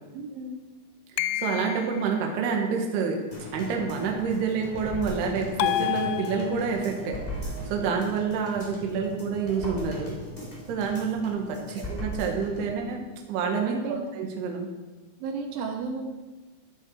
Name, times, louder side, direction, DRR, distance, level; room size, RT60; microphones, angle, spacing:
voice 1, 0.1-0.6 11.8-12.0 13.7-14.1 15.2-16.1, right 4 dB, 85° right, 3 dB, 3.6 m, -34 dB
sound 1, 1.2-2.1 5.6-6.8, left 14 dB, 85° left, 2.4 m, -28 dB
voice 2, 1.4-3.2 3.5-7.2 7.7-10.2 10.7-13.0 13.3-13.8 14.2-14.7, right 5 dB, 65° right, 1 dB, 3.5 m, -28 dB
sound 2, 3.3-12.7 13.1-13.2, equal, 10° left, 3.0 m, -38 dB
13.0 x 12.5 x 4.9 m, 1.2 s
omnidirectional pair, 5.4 m